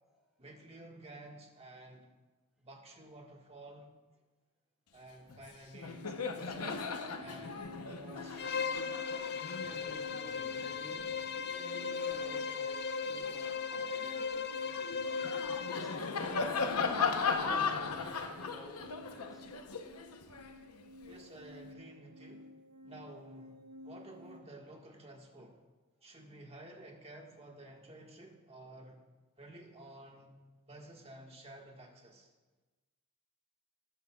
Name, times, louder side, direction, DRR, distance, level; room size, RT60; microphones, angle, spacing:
voice 1, 0.4-2.1 2.6-3.9 4.9-6.8 7.2-8.8 21.0-22.5 22.8-23.5 23.8-25.6 26.0-29.0 29.4-30.4 30.7-32.3, right 1 dB, 30° right, 1 dB, 1.5 m, -52 dB
Laughter, 5.3-5.5 5.7-12.5 13.0-21.2, left 5 dB, 80° left, 0.8 m, -38 dB
sound 1, 5.8-24.4, left 1 dB, 85° right, 1.5 m, -54 dB
Bowed string instrument, 8.4-16.0, left 6 dB, 45° left, 0.5 m, -37 dB
voice 2, 9.6-14.7 15.1-16.2 16.6-19.7, equal, ahead, -5 dB, 2.0 m, -54 dB
19.0 x 11.0 x 2.3 m, 1.2 s
head